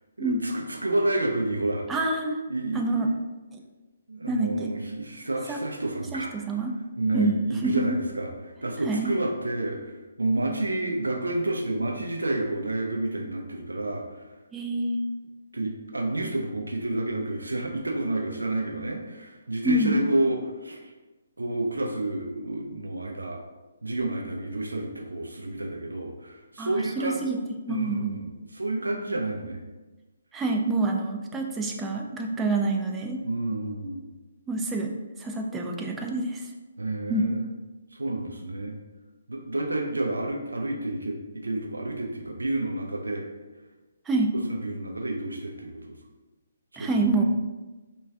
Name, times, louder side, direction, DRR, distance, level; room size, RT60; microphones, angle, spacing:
voice 1, 0.2-1.9 2.5-3.1 4.1-6.6 7.0-14.3 15.5-20.9 21.4-23.4 23.8-27.3 27.7-29.6 33.2-34.1 36.8-37.5 37.9-38.8 39.3-43.3 44.5-46.0 46.7-47.2, right 2 dB, 80° right, 0 dB, 0.4 m, -30 dB
voice 2, 1.9-2.4 2.7-3.1 4.3-4.7 5.5-5.6 6.1-6.7 7.1-7.4 7.6-7.8 8.9-9.1 14.5-15.0 19.6-20.0 26.6-27.4 27.7-28.1 30.3-33.2 34.5-34.9 35.2-36.4 37.1-37.3 44.1-44.3 46.8-47.2, right 2 dB, 10° right, 1 dB, 0.3 m, -27 dB
2.3 x 2.3 x 3.3 m, 1.2 s
figure-of-eight pair, 135°, 0 cm